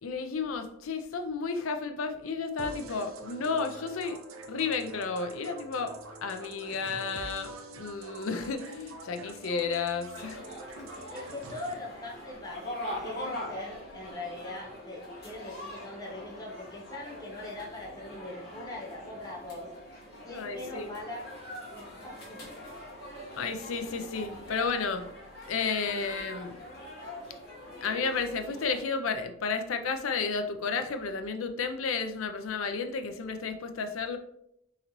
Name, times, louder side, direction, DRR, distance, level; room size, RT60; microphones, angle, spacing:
voice 1, 0.0-4.2 4.5-10.4 20.3-20.9 23.4-25.1 25.5-26.5 27.8-34.2, left 5 dB, 90° left, 7 dB, 0.5 m, -32 dB
sound 1, 2.6-11.7, right 2 dB, 90° right, 0.5 m, -45 dB
sound 2, 10.1-28.8, left 1 dB, 50° left, 1.4 m, -43 dB
voice 2, 11.1-12.6 13.0-21.3 21.7-22.7, left 2 dB, 20° left, -4 dB, 0.7 m, -42 dB
4.1 x 3.8 x 3.0 m, 0.78 s
head